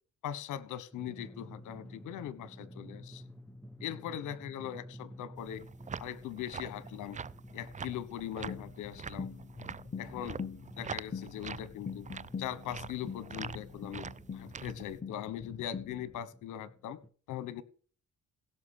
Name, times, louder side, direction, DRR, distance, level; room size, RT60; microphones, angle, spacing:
voice 1, 0.2-3.2 3.8-5.6 6.0-7.2 7.5-9.3 10.0-10.4 10.8-12.0 12.4-14.1 14.3-17.0 17.3-17.6, left 11 dB, 90° left, 17 dB, 1.2 m, -40 dB
Drum, 0.9-17.1, equal, 5° left, 0.9 m, -52 dB
sound 1, 5.4-15.0, right 6 dB, 25° right, 0.5 m, -45 dB
sound 2, 8.5-16.2, left 6 dB, 30° left, 0.8 m, -43 dB
17.0 x 6.0 x 6.5 m, 0.41 s
cardioid pair, 90°, 30 cm